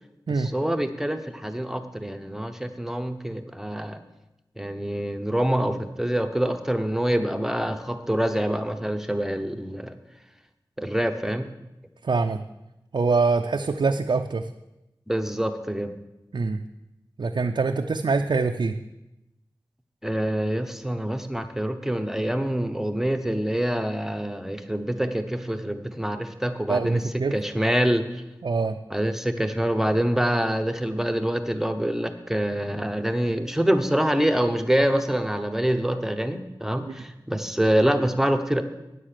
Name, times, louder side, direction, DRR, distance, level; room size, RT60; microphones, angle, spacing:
voice 1, 0.4-4.0 4.6-9.9 10.8-11.5 15.1-15.9 20.0-28.0 28.9-38.6, right 1 dB, 5° right, 7 dB, 0.8 m, -25 dB
voice 2, 12.0-12.4 12.9-14.5 16.3-16.6 17.2-18.8 26.7-27.3 28.4-28.8 36.8-36.9, right 4 dB, 65° right, 4 dB, 0.5 m, -24 dB
9.7 x 7.4 x 6.6 m, 0.94 s
wide cardioid pair, 75°, 8 cm